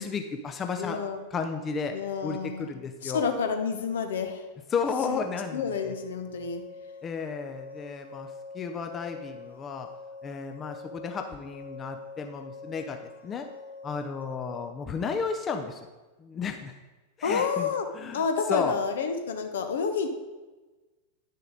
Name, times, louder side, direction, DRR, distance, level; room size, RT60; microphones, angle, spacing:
voice 1, 0.0-1.0 1.3-2.0 2.2-3.3 4.7-5.9 7.0-9.9 10.2-13.5 13.8-15.9 16.2-16.7 17.2-18.2 18.5-18.8, left 5 dB, 25° left, 6 dB, 0.6 m, -33 dB
voice 2, 0.8-1.2 1.9-2.7 3.0-4.4 5.1-5.2 5.5-6.6 17.2-17.8 18.1-20.1, left 5 dB, 60° left, 7 dB, 0.9 m, -29 dB
sound 1, 5.1-14.7, left 4 dB, 85° left, 1.6 m, -45 dB
9.4 x 6.6 x 3.9 m, 1.2 s
figure-of-eight pair, 90°, 0 cm